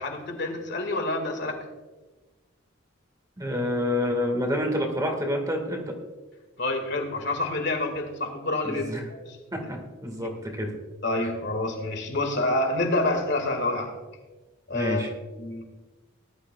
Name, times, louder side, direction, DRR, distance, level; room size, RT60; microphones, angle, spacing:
voice 1, 0.0-1.7 6.6-9.4 10.2-10.3 11.0-13.9 14.7-15.0 15.4-15.6, left 2 dB, 60° left, 4 dB, 2.0 m, -28 dB
voice 2, 3.4-6.0 8.6-9.1 9.5-10.7 14.7-15.1, left 1 dB, 20° right, 2 dB, 1.7 m, -28 dB
18.5 x 12.0 x 2.3 m, 1.2 s
head